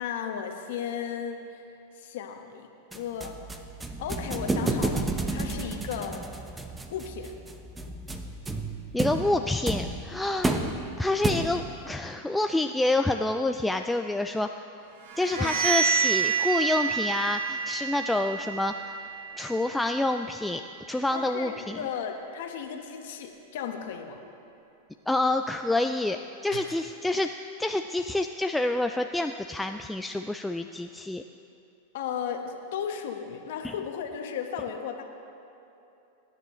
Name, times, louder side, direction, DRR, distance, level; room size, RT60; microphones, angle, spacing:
voice 1, 0.0-1.6 1.9-3.4 4.0-6.3 6.9-7.3 15.4-15.6 21.1-24.2 26.5-26.6 31.9-35.0, left 7 dB, 70° left, 4 dB, 1.2 m, -35 dB
sound 1, 2.9-11.8, right 2 dB, 10° right, 0.9 m, -31 dB
voice 2, 8.9-10.5 11.0-14.5 15.2-18.9 19.4-20.6 20.9-21.8 25.1-27.3 27.6-31.2 33.6-33.7, left 2 dB, 5° left, 5 dB, 0.3 m, -27 dB
sound 2, 15.0-20.7, right 6 dB, 70° right, 1.7 m, -29 dB
20.5 x 9.8 x 3.2 m, 2.8 s
hypercardioid pair, 115°, 0 cm